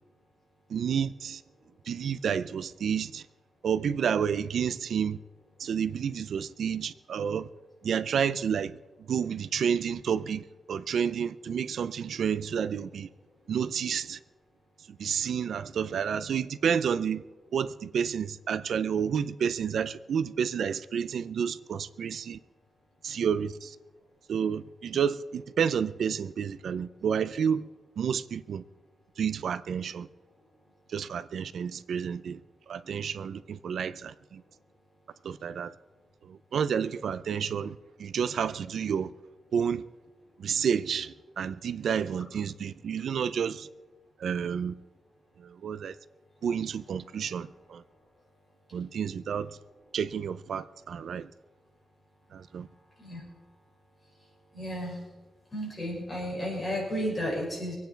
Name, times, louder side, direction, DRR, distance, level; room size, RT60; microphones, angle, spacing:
voice 1, 0.7-1.4 1.9-3.2 3.6-5.2 5.6-7.5 7.8-8.8 9.1-13.1 13.5-14.2 15.0-17.2 17.5-22.4 23.0-23.8 24.3-27.7 28.0-28.6 29.2-30.1 30.9-32.4 32.7-34.4 35.2-35.7 36.2-39.1 39.5-39.8 40.4-43.7 44.2-44.7 45.4-46.0 46.4-47.8 48.7-49.6 49.9-51.3 52.3-52.7, right 7 dB, 70° right, 0.6 m, -30 dB
voice 2, 54.5-55.0 55.5-57.7, equal, 25° left, 6.5 m, -32 dB
25.5 x 9.3 x 4.6 m
cardioid pair, 110°, 0 cm